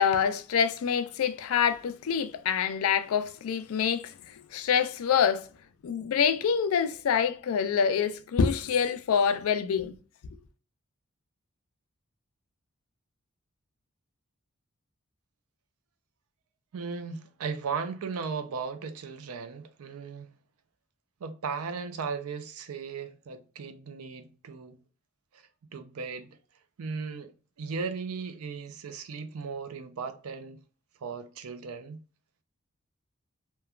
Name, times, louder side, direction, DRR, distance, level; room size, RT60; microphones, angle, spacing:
voice 1, 0.0-5.5 5.8-9.9, left 7 dB, 80° left, 0.4 m, -26 dB
voice 2, 16.7-20.3 21.2-24.8 25.3-26.3 26.8-27.3 27.6-30.6 31.0-32.0, right 5 dB, 90° right, 0.4 m, -36 dB
3.0 x 2.2 x 2.3 m
head